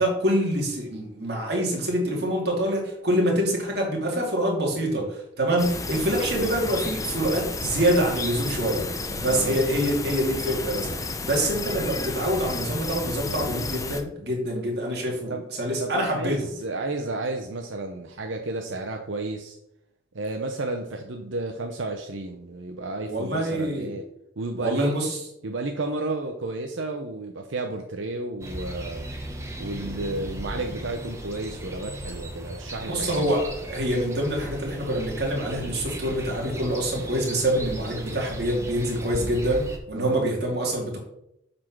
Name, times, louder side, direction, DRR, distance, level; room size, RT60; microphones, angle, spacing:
voice 1, 0.0-16.4 23.0-24.0 24.6-25.2 32.8-41.0, right 1 dB, 55° right, -1 dB, 2.5 m, -26 dB
sound 1, 5.6-14.0, left 3 dB, 15° left, 0.6 m, -32 dB
voice 2, 9.3-9.6 15.3-15.4 15.8-19.6 20.1-24.0 24.4-24.9 25.4-29.1 29.6-33.4 39.9-40.2, right 2 dB, 85° right, 3 dB, 0.8 m, -32 dB
sound 2, 28.4-39.8, right 1 dB, 15° right, 1.0 m, -36 dB
7.5 x 4.4 x 6.0 m, 0.80 s
head